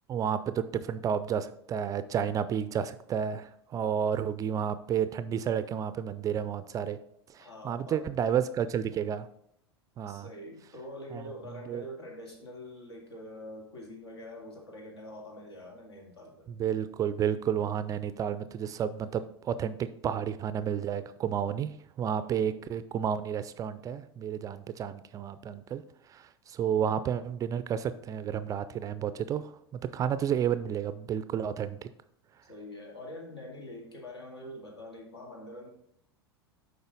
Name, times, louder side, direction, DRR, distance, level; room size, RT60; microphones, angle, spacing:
voice 1, 0.1-7.0 7.3-9.3 10.0-10.3 11.1-11.2 11.7-11.8 16.5-25.8 26.1-31.9, right 8 dB, 25° right, 13 dB, 0.4 m, -31 dB
voice 2, 7.4-8.1 10.1-16.5 22.2-22.3 32.5-35.7, left 1 dB, 75° left, -1 dB, 2.2 m, -45 dB
7.9 x 5.3 x 3.9 m, 0.72 s
figure-of-eight pair, 85°, 14 cm